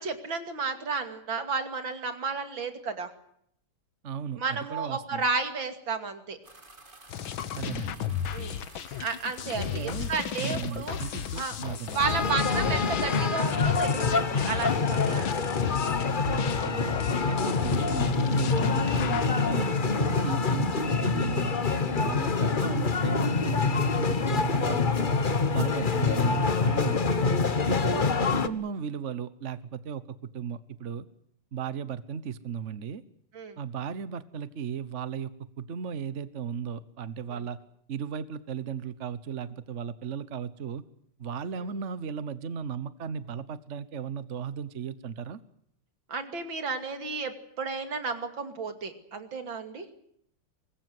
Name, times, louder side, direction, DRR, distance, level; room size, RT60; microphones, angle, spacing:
voice 1, 0.0-3.1 4.4-6.4 8.3-8.6 9.0-11.6 11.9-15.4 27.6-27.8 33.3-33.6 37.3-37.4 41.6-41.7 46.1-49.9, right 4 dB, 60° right, 8 dB, 3.3 m, -32 dB
voice 2, 4.0-5.2 7.5-8.0 9.5-10.1 10.4-12.0 16.2-17.0 17.3-19.7 20.0-25.2 25.5-27.3 27.7-31.1 31.5-33.0 33.6-37.6 37.9-40.8 41.2-45.4, right 7 dB, 45° right, 15 dB, 1.0 m, -36 dB
sound 1, 6.4-12.3, right 2 dB, 25° right, 2.7 m, -51 dB
sound 2, 7.1-19.3, left 9 dB, 65° left, 1.8 m, -35 dB
sound 3, 12.0-28.5, left 4 dB, 35° left, 0.9 m, -26 dB
24.5 x 21.0 x 7.9 m, 0.71 s
omnidirectional pair, 2.4 m